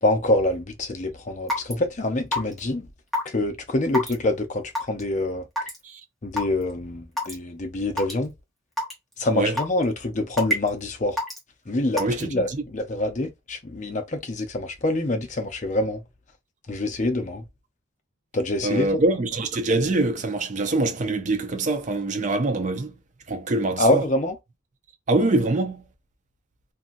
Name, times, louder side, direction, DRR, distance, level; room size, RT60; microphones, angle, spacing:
voice 1, 0.0-2.9 3.3-5.5 6.2-8.3 9.2-11.2 11.7-16.0 16.7-17.4 18.3-19.0 23.8-24.4, left 1 dB, 35° left, 0.5 m, -25 dB
Raindrop / Water tap faucet / Drip, 1.5-1.7 2.3-2.6 3.1-3.3 3.9-4.1 4.7-5.0 5.6-5.8 6.4-6.5 7.2-7.3 8.0-8.1 8.8-8.9 9.6-9.8 10.4-10.7 11.2-11.4 12.0-12.2, left 1 dB, ahead, 0.8 m, -25 dB
voice 2, 12.0-12.4 18.6-22.9 23.3-24.0 25.1-25.8, right 2 dB, 35° right, 0.4 m, -24 dB
2.7 x 2.6 x 2.5 m
head